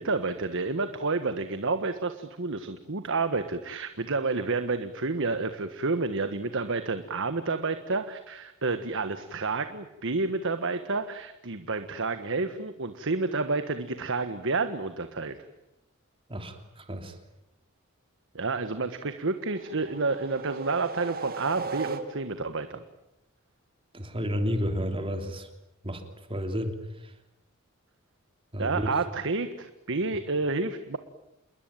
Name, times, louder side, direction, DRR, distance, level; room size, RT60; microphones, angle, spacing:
voice 1, 0.0-15.4 18.3-22.8 28.6-31.0, right 3 dB, 60° right, 9 dB, 1.4 m, -30 dB
voice 2, 16.3-17.1 23.9-25.5 25.8-26.0 26.3-26.7 28.5-28.9, equal, 25° right, 6 dB, 3.3 m, -31 dB
sound 1, 19.4-22.5, right 4 dB, 45° right, 1.9 m, -37 dB
28.5 x 21.5 x 9.1 m, 0.90 s
head